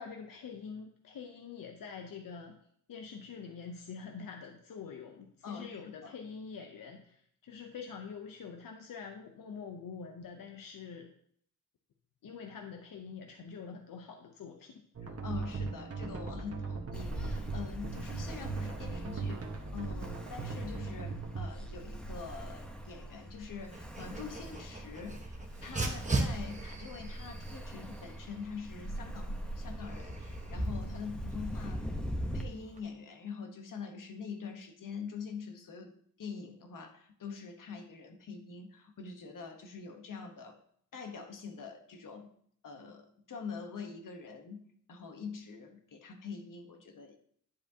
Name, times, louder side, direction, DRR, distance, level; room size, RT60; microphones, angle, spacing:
voice 1, 0.0-2.6 2.9-11.1 12.2-14.8, left 6 dB, 90° left, 5 dB, 0.7 m, -45 dB
voice 2, 5.4-6.1 15.0-31.9 32.3-40.6 40.9-42.3 42.6-47.2, left 5 dB, 70° left, 6 dB, 1.0 m, -45 dB
sound 1, 15.0-21.5, right 4 dB, 45° right, 1.2 m, -39 dB
Ocean, 16.9-32.4, equal, 5° left, 0.8 m, -42 dB
Dog, 23.7-32.8, right 2 dB, 20° right, 1.1 m, -40 dB
10.5 x 7.1 x 2.7 m, 0.65 s
wide cardioid pair, 150°, 33 cm